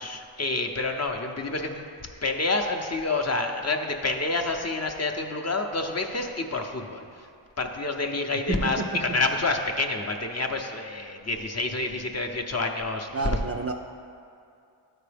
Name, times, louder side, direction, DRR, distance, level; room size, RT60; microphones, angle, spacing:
voice 1, 0.0-1.8 2.2-7.0 7.6-13.1, left 3 dB, 30° left, 3 dB, 0.7 m, -28 dB
voice 2, 8.5-8.9 13.1-13.7, right 3 dB, 30° right, 3 dB, 0.4 m, -29 dB
11.5 x 4.6 x 3.4 m, 2.5 s
cardioid pair, 60°, 50 cm